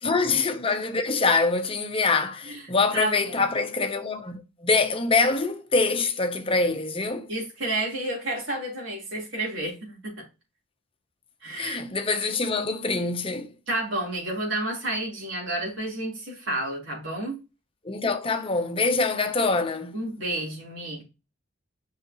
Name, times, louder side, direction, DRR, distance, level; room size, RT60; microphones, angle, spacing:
voice 1, 0.0-7.3 11.5-13.5 17.8-20.0, left 3 dB, 30° left, 0.9 m, -25 dB
voice 2, 2.9-3.3 7.3-10.1 11.4-11.8 13.7-17.4 19.9-21.0, right 1 dB, 70° right, 3.8 m, -30 dB
7.5 x 5.6 x 3.0 m
head